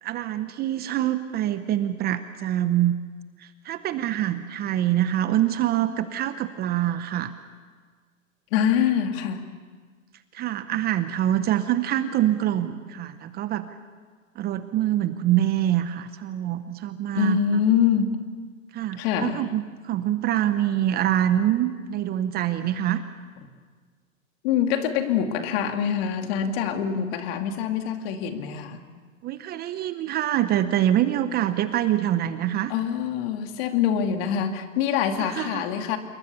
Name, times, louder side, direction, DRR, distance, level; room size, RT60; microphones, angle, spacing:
voice 1, 0.0-3.0 3.4-7.3 10.3-13.7 14.4-17.6 18.7-23.0 29.2-32.7 35.2-35.6, right 12 dB, 25° right, 11 dB, 0.9 m, -25 dB
voice 2, 8.5-9.4 17.1-18.2 19.0-19.4 24.4-28.8 32.7-36.0, left 8 dB, 45° left, 6 dB, 2.6 m, -24 dB
27.5 x 22.0 x 7.0 m, 1.5 s
hypercardioid pair, 125°, 41 cm